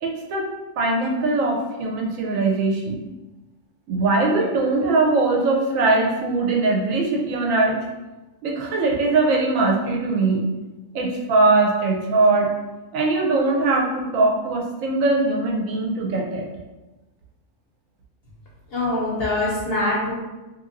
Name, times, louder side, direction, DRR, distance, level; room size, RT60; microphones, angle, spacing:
voice 1, 0.0-0.5 0.8-3.0 3.9-7.8 8.4-10.4 10.9-12.5 12.9-16.4, right 3 dB, 70° right, -1 dB, 0.9 m, -21 dB
voice 2, 18.7-20.1, left 2 dB, 60° left, -5 dB, 0.7 m, -23 dB
2.9 x 2.5 x 2.5 m, 1.1 s
omnidirectional pair, 1.5 m